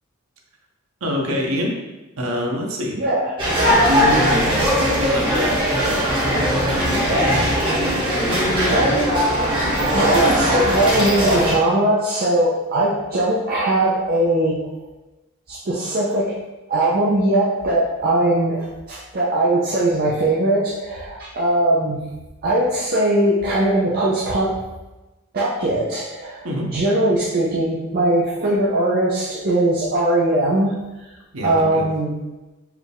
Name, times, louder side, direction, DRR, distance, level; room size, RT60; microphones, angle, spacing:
voice 1, 1.0-1.8 2.2-3.0 3.7-7.0 26.4-26.7 31.3-31.9, left 1 dB, 85° right, 0 dB, 0.8 m, -26 dB
voice 2, 3.0-3.6 8.1-9.1 9.9-14.7 15.5-16.3 16.7-22.0 22.4-24.6 25.3-30.7 31.4-32.1, right 1 dB, 45° right, -6 dB, 0.6 m, -20 dB
sound 1, 3.4-11.6, equal, 25° right, 1.2 m, -19 dB
4.6 x 2.4 x 3.4 m, 1.1 s
head